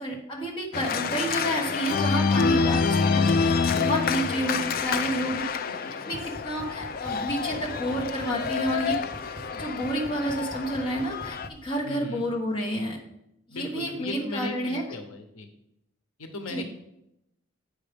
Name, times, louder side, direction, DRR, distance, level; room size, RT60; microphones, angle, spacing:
voice 1, 0.0-3.2 3.7-5.4 6.1-9.0 9.5-13.0 13.5-14.8 16.5-16.6, right 1 dB, 25° left, -3 dB, 1.4 m, -30 dB
Organ, 0.7-11.5, left 5 dB, 45° left, 0.3 m, -27 dB
voice 2, 5.7-6.0 11.8-12.2 13.5-15.5 16.2-16.7, left 2 dB, 80° left, 5 dB, 1.0 m, -37 dB
sound 1, 6.1-11.7, right 1 dB, 20° right, 0.6 m, -45 dB
8.3 x 5.2 x 5.2 m, 0.83 s
head